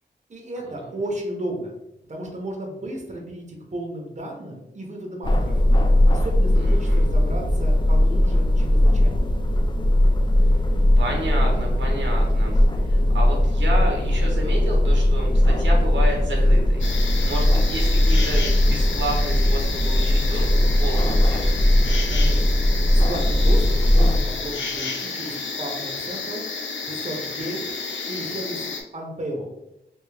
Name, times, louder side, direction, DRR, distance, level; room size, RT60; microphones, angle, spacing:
voice 1, 0.3-1.7 2.1-5.6 6.1-9.3 22.1-22.6 22.9-26.5 26.8-27.6 28.1-29.5, right 1 dB, 40° right, 0 dB, 0.9 m, -34 dB
sound 1, 5.2-24.2, left 1 dB, 25° left, 0.4 m, -19 dB
voice 2, 6.6-7.0 11.0-16.8 17.2-21.5, right 1 dB, 85° right, -1 dB, 1.1 m, -31 dB
sound 2, 16.8-28.8, left 4 dB, 85° left, 0.6 m, -31 dB
3.4 x 2.9 x 3.3 m, 0.87 s
wide cardioid pair, 65°, 19 cm